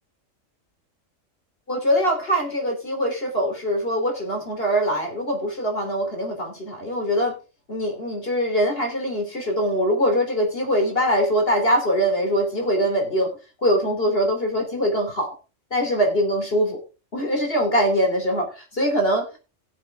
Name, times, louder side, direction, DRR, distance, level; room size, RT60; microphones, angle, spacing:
voice 1, 1.7-7.4 7.7-13.3 13.6-15.3 15.7-16.8 17.1-19.4, equal, 45° left, 3 dB, 3.6 m, -23 dB
18.5 x 7.4 x 3.6 m, 0.31 s
omnidirectional pair, 1.3 m